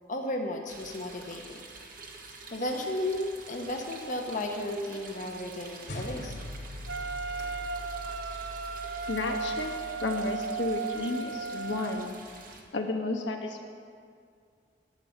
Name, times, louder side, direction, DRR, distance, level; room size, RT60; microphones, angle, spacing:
voice 1, 0.1-1.6 2.5-6.3, left 1 dB, 45° left, 2 dB, 1.0 m, -34 dB
sound 1, 0.7-12.6, right 3 dB, 50° right, 1.4 m, -48 dB
sound 2, 5.9-10.5, left 1 dB, 65° left, 2.6 m, -42 dB
Wind instrument woodwind instrument, 6.9-12.1, right 4 dB, 80° right, 0.5 m, -35 dB
voice 2, 9.1-9.7 10.0-12.1 12.7-13.6, left 2 dB, 85° left, 2 dB, 1.3 m, -32 dB
10.5 x 9.2 x 7.2 m, 2.2 s
head